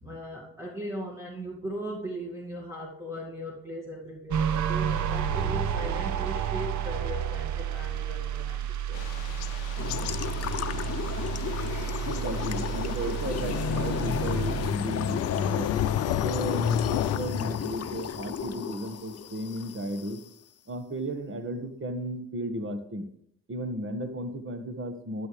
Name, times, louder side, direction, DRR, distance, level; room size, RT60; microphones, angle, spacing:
voice 1, 0.0-9.4 11.1-12.2 14.1-14.3, equal, 10° right, -2 dB, 2.2 m, -39 dB
sound 1, 4.3-14.7, right 9 dB, 55° right, 0.9 m, -31 dB
Thunder / Rain, 8.9-17.2, left 13 dB, 90° left, 0.6 m, -35 dB
sound 2, 9.8-20.2, left 8 dB, 45° left, 0.8 m, -32 dB
voice 2, 12.1-15.7 16.0-20.2 20.7-23.1 23.5-25.3, right 1 dB, 35° right, 9 dB, 1.6 m, -34 dB
12.0 x 11.0 x 3.4 m, 0.69 s
supercardioid pair, 60°, 35 cm